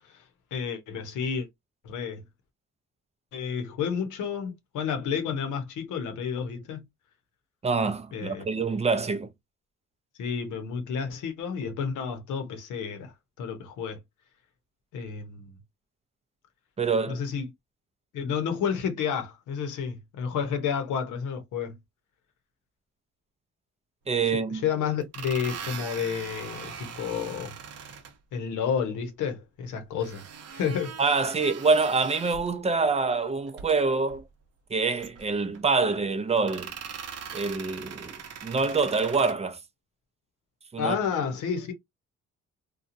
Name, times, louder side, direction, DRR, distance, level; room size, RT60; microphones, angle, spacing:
voice 1, 0.5-1.5 1.8-2.2 3.3-6.8 8.1-8.5 10.2-13.1 13.4-14.0 14.9-15.5 17.1-17.5 18.1-21.8 24.6-27.5 28.3-30.2 30.5-31.0 40.8-41.7, left 7 dB, 80° left, 0.9 m, -30 dB
voice 2, 7.6-9.3 16.8-17.2 24.1-24.6 31.0-34.2 34.7-36.7 37.3-39.6 40.7-41.0, right 4 dB, 20° right, 0.5 m, -26 dB
sound 1, 24.2-24.3 25.0-28.1 30.0-32.6 33.5-33.7 34.1-34.2 35.0-35.6 36.4-39.3, right 7 dB, 55° right, 0.8 m, -41 dB
2.9 x 2.3 x 2.6 m
cardioid pair, 90°, 30 cm